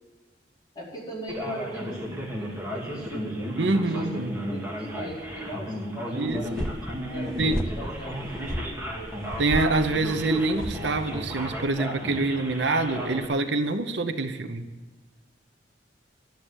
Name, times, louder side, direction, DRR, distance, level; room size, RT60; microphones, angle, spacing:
voice 1, 0.7-9.1, right 1 dB, 20° left, -6 dB, 4.8 m, -40 dB
Male speech man speaking, 1.3-13.3, equal, 10° right, 2.1 m, -34 dB
voice 2, 3.6-4.4 6.1-6.4 7.4-7.6 9.4-14.7, right 2 dB, 80° right, 9 dB, 0.9 m, -26 dB
sound 1, 6.3-11.7, equal, 5° left, 0.8 m, -35 dB
12.0 x 7.7 x 9.6 m, 1.3 s
head